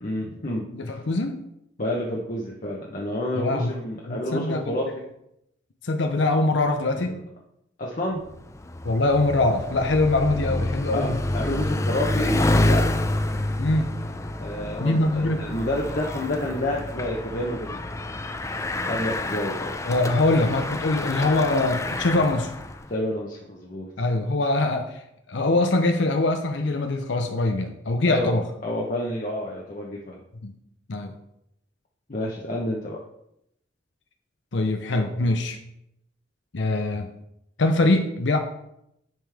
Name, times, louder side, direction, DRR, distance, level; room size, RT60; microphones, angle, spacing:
voice 1, 0.0-1.0 1.8-4.9 7.0-7.2 7.8-8.2 10.9-12.9 14.4-17.8 18.9-19.7 22.9-23.9 28.0-28.3 28.6-30.2 32.1-33.0, left 1 dB, 45° left, -3 dB, 0.9 m, -29 dB
voice 2, 0.7-1.4 3.4-3.7 4.1-4.8 5.8-7.2 8.8-11.2 13.6-13.9 14.8-15.5 19.8-22.5 24.0-25.0 25.3-28.5 30.4-30.5 30.9-31.1 34.5-35.6 36.5-37.1 37.6-38.4, left 2 dB, 65° left, 5 dB, 0.7 m, -23 dB
Bicycle, 8.2-22.9, left 1 dB, 15° left, 0.4 m, -28 dB
10.5 x 5.2 x 3.5 m, 0.79 s
head